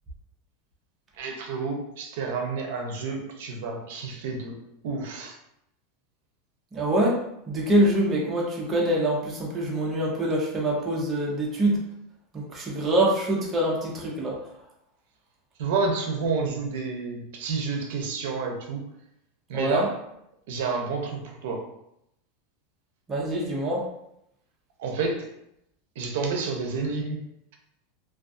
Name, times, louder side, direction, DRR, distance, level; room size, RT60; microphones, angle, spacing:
voice 1, 1.2-5.4 15.6-18.8 19.5-19.9 20.5-21.7 24.8-25.3 26.0-27.2, right 4 dB, 70° right, 2 dB, 0.5 m, -29 dB
voice 2, 6.7-7.2 7.5-11.8 12.3-14.4 19.5-19.9 23.1-23.9, right 1 dB, 20° right, -3 dB, 0.5 m, -25 dB
2.3 x 2.3 x 2.5 m, 0.79 s
supercardioid pair, 155°, 0 cm